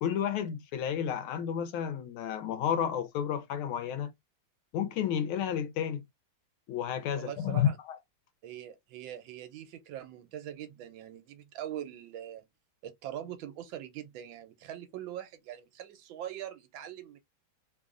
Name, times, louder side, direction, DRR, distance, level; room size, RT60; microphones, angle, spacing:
voice 1, 0.0-4.1 4.7-6.0 6.7-8.0, left 9 dB, 85° left, 1.5 m, -31 dB
voice 2, 7.2-7.8 8.4-12.4 12.8-17.2, right 11 dB, 75° right, 1.3 m, -42 dB
3.4 x 2.3 x 2.4 m
omnidirectional pair, 2.2 m